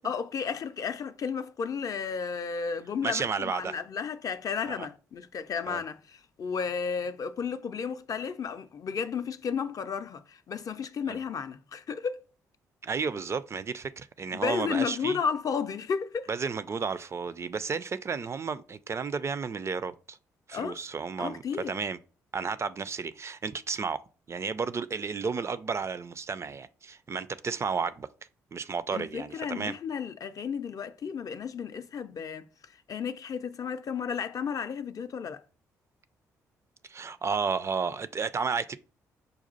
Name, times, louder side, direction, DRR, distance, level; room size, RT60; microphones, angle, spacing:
voice 1, 0.0-12.2 14.3-16.3 20.5-20.8 21.2-21.8 28.9-35.4, left 6 dB, 45° left, 0.4 m, -33 dB
voice 2, 3.0-3.8 4.7-4.9 5.7-5.8 11.1-11.2 12.8-15.2 16.3-20.2 20.5-22.0 22.3-24.0 24.3-28.1 28.5-29.7 36.9-38.8, right 5 dB, 35° right, 0.4 m, -32 dB
5.2 x 2.4 x 4.0 m
hypercardioid pair, 45°, 8 cm